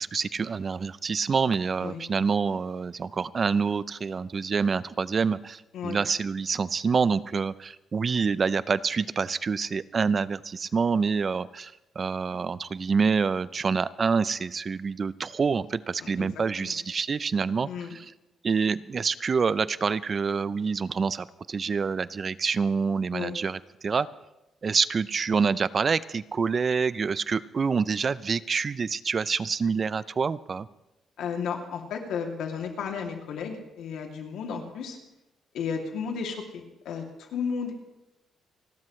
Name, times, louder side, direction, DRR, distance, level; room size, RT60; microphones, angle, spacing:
voice 1, 0.0-18.1 18.4-24.1 24.6-30.7, right 5 dB, 40° right, 17 dB, 0.5 m, -27 dB
voice 2, 17.6-18.0 23.1-23.3 31.2-35.0 35.5-37.7, left 6 dB, 85° left, 2 dB, 2.6 m, -33 dB
29.5 x 12.5 x 3.2 m, 0.94 s
cardioid pair, 110°, 0 cm